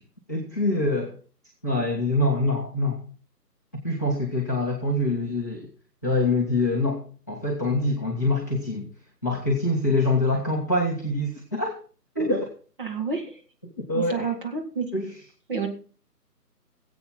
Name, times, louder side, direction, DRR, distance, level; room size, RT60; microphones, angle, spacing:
voice 1, 0.3-1.1 1.6-3.0 3.8-5.7 6.0-8.9 9.2-11.8 12.1-12.5 13.6-14.3 14.9-15.1, left 2 dB, 10° left, -5 dB, 0.7 m, -25 dB
voice 2, 12.8-13.4 13.9-14.9 15.5-15.7, right 5 dB, 30° right, 2 dB, 2.1 m, -29 dB
19.5 x 8.1 x 3.7 m, 0.39 s
figure-of-eight pair, 145°, 49 cm